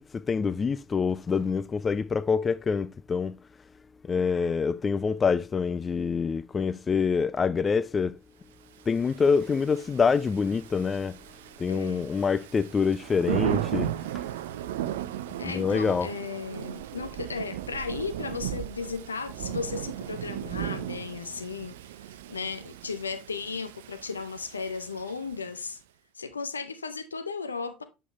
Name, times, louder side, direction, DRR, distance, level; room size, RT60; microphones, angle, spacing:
voice 1, 0.0-3.4 4.0-8.2 8.9-11.2 11.6-13.9 15.4-16.1, left 5 dB, 30° left, 0.3 m, -26 dB
Thunder / Rain, 8.9-25.5, right 12 dB, 70° right, 0.5 m, -36 dB
voice 2, 11.7-12.1 15.4-21.8 22.3-25.8 26.2-27.8, left 5 dB, 85° left, 0.7 m, -35 dB
8.4 x 5.5 x 3.1 m
figure-of-eight pair, 65°, 0 cm